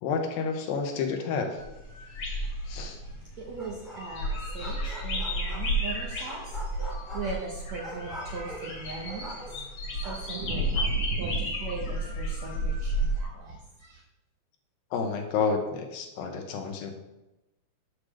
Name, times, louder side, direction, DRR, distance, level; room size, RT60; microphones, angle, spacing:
voice 1, 0.0-1.6 2.7-3.0 14.9-16.9, left 5 dB, 80° left, 4 dB, 2.7 m, -30 dB
sound 1, 1.6-13.2, right 1 dB, 45° left, 3.6 m, -32 dB
voice 2, 3.4-9.3 10.0-14.0, right 4 dB, 70° right, -1 dB, 1.7 m, -39 dB
sound 2, 3.6-4.2 4.5-5.9 6.2-9.7 10.0-10.8, right 1 dB, ahead, 1.6 m, -43 dB
8.0 x 4.9 x 6.5 m, 0.97 s
omnidirectional pair, 4.3 m